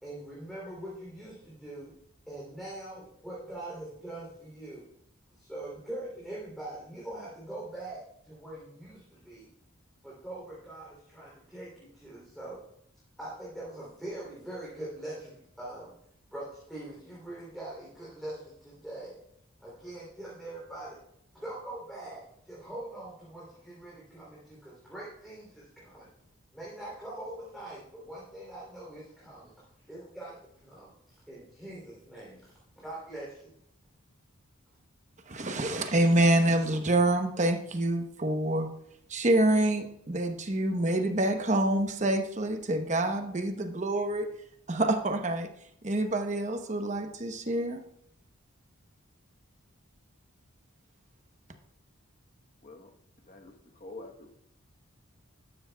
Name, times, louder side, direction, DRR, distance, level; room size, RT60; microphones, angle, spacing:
voice 1, 0.0-1.9 2.3-4.8 5.4-9.5 10.0-12.6 13.2-15.9 16.3-19.1 19.6-21.0 21.3-26.1 26.5-29.5 29.9-30.3 30.6-30.9 31.3-32.4 32.8-33.5, right 1 dB, ahead, -6 dB, 3.1 m, -42 dB
voice 2, 35.3-38.7 39.1-44.3 44.7-45.5 45.8-47.8, right 1 dB, 35° right, 6 dB, 0.9 m, -27 dB
voice 3, 53.8-54.3, left 2 dB, 40° left, 3 dB, 1.1 m, -46 dB
13.0 x 12.0 x 2.3 m, 0.72 s
head